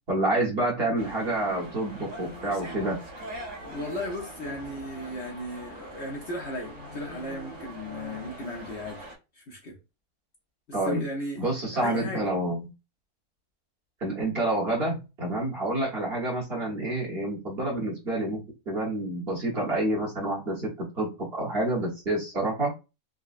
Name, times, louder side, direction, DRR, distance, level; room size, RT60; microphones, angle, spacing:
voice 1, 0.1-3.0 10.7-11.1 11.4-12.7 14.0-18.4 18.7-22.7, right 1 dB, 45° right, 1.3 m, -28 dB
sound 1, 1.0-9.1, right 1 dB, 60° right, 1.8 m, -42 dB
voice 2, 3.7-9.1 9.3-9.8 10.8-11.4 11.7-12.2, left 1 dB, 55° left, 0.9 m, -35 dB
3.8 x 2.2 x 2.5 m
omnidirectional pair, 1.6 m